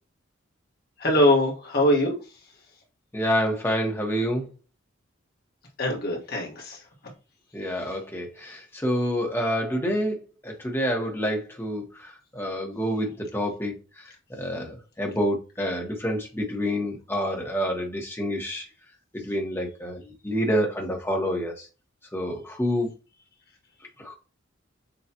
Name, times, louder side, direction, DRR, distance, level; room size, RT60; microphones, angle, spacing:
voice 1, 1.0-2.2 5.8-6.8 7.8-7.9, left 1 dB, 50° left, 1.4 m, -22 dB
voice 2, 3.1-4.5 7.5-18.6 19.1-21.7 22.1-22.9 24.0-24.2, equal, 10° left, 0.9 m, -28 dB
6.6 x 2.3 x 2.8 m
head